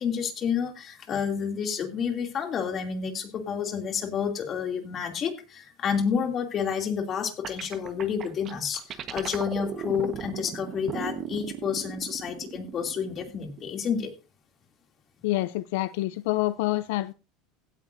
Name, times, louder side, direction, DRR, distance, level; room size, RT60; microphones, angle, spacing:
voice 1, 0.0-14.1, left 7 dB, 35° left, 2.6 m, -30 dB
sound 1, 7.4-14.0, right 8 dB, 35° right, 1.2 m, -37 dB
voice 2, 15.2-17.1, left 17 dB, 75° left, 0.4 m, -27 dB
16.5 x 9.3 x 2.6 m
supercardioid pair, 140°, 0 cm